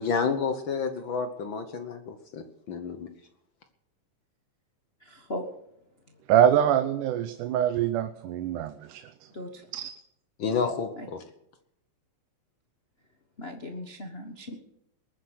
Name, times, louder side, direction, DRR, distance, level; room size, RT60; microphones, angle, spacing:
voice 1, 0.0-3.1 10.4-11.2, left 5 dB, 60° left, 1.3 m, -30 dB
voice 2, 5.0-5.5 9.3-9.7 11.0-11.1 13.4-14.6, left 1 dB, 85° left, 0.5 m, -38 dB
voice 3, 6.3-9.0 9.7-9.9, right 10 dB, 85° right, 2.4 m, -24 dB
21.0 x 9.6 x 6.4 m
omnidirectional pair, 3.5 m